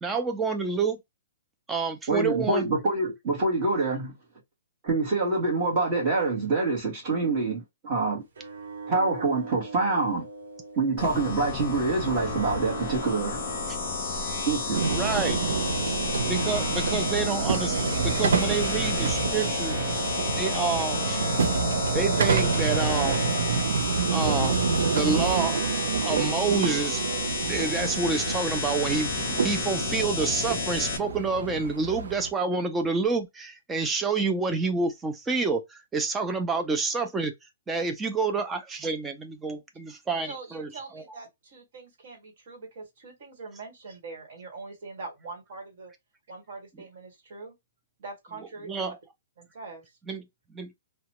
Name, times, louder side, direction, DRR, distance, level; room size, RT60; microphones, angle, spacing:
voice 1, 0.0-1.0 1.7-2.7 14.8-15.4 15.9-16.0 16.2-19.8 20.3-21.2 21.9-23.2 24.1-25.7 26.0-27.0 27.4-37.3 37.7-41.2 48.7-49.0 50.1-50.3 50.5-50.7, right 4 dB, 5° right, 0.4 m, -28 dB
voice 2, 2.1-4.1 4.8-8.2 8.9-10.2 10.8-13.4 14.5-14.8, right 3 dB, 25° right, 1.3 m, -26 dB
sound 1, 8.4-11.4 12.0-20.3 20.8-23.3 24.1-27.2, right 4 dB, 70° right, 1.0 m, -42 dB
sound 2, 11.0-31.0, left 4 dB, 30° left, 0.8 m, -31 dB
sound 3, 14.7-32.3, right 5 dB, 90° right, 0.6 m, -28 dB
voice 3, 40.2-45.9 46.3-47.5 48.0-49.0 49.4-49.9, right 3 dB, 45° right, 1.4 m, -43 dB
2.8 x 2.2 x 2.9 m
hypercardioid pair, 175°, 0 cm